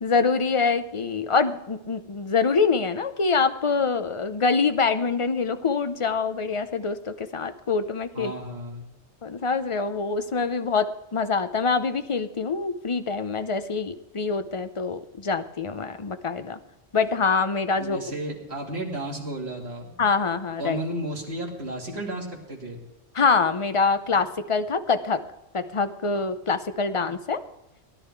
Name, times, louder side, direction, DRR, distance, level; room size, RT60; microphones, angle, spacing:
voice 1, 0.0-8.3 9.2-16.6 16.9-18.0 20.0-20.8 23.1-25.2 25.5-27.4, left 4 dB, 35° left, 10 dB, 0.6 m, -25 dB
voice 2, 8.1-8.8 17.8-20.0 20.6-22.8, right 1 dB, 55° right, -1 dB, 2.8 m, -33 dB
17.0 x 11.0 x 4.7 m, 0.92 s
omnidirectional pair, 1.3 m